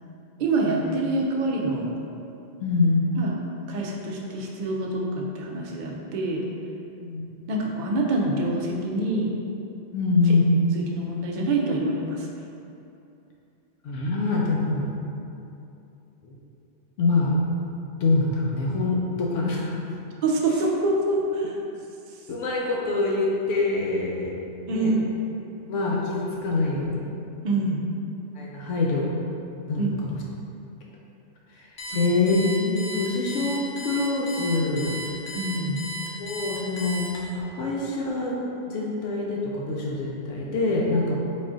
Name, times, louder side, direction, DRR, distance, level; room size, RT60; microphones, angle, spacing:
voice 1, 0.4-1.9 3.2-3.4 3.7-6.5 7.5-9.3 10.2-10.3 10.7-12.3 20.2-21.6 22.1-22.2 24.7-25.0 27.4-27.8 29.8-29.9 31.9-32.1 35.3-35.8, right 2 dB, 60° right, -1 dB, 0.5 m, -26 dB
voice 2, 2.6-3.0 7.0-7.2 9.9-10.5 13.8-14.9 16.2-16.4 17.0-17.4 18.0-19.7 22.3-24.3 24.7-24.9 25.7-27.0 28.3-29.1 29.7-30.2 31.5-31.7 31.9-35.0 36.2-37.0 37.6-38.4 38.7-41.2, left 3 dB, 80° left, -3 dB, 0.9 m, -24 dB
Alarm, 31.8-37.4, right 1 dB, 50° left, 0.7 m, -35 dB
4.0 x 2.4 x 3.8 m, 2.8 s
omnidirectional pair, 1.3 m